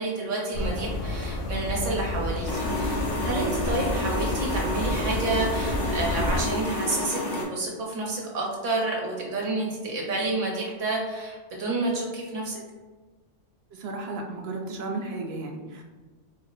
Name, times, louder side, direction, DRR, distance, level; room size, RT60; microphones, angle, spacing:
voice 1, 0.0-12.6, right 2 dB, 80° right, -2 dB, 1.3 m, -29 dB
sound 1, 0.5-6.4, left 2 dB, 85° left, 1.0 m, -30 dB
sound 2, 2.5-7.4, left 1 dB, 65° left, 1.8 m, -30 dB
voice 2, 13.7-15.8, right 2 dB, 60° right, 2 dB, 0.8 m, -34 dB
4.4 x 2.1 x 3.8 m, 1.3 s
omnidirectional pair, 1.3 m